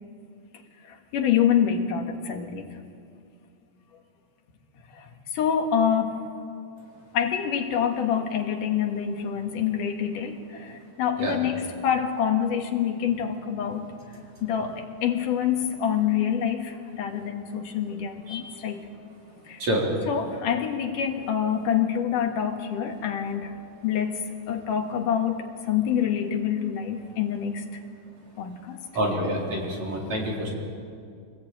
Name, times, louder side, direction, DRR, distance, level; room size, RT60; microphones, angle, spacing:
voice 1, 0.8-2.8 4.9-6.2 7.1-18.9 19.4-19.6 20.1-23.6 23.8-27.6 28.4-28.8, left 8 dB, 75° left, 4 dB, 3.1 m, -26 dB
voice 2, 19.6-19.9 28.9-30.5, right 1 dB, 55° right, -2 dB, 5.3 m, -27 dB
26.0 x 19.0 x 8.8 m, 2.3 s
omnidirectional pair, 3.8 m